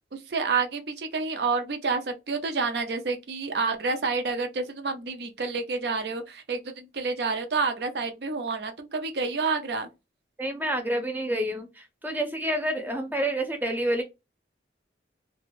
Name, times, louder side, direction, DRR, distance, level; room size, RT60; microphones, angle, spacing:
voice 1, 0.1-9.9, right 4 dB, 65° right, 0.5 m, -29 dB
voice 2, 10.4-14.0, right 1 dB, 10° right, 0.5 m, -28 dB
2.4 x 2.3 x 3.0 m
head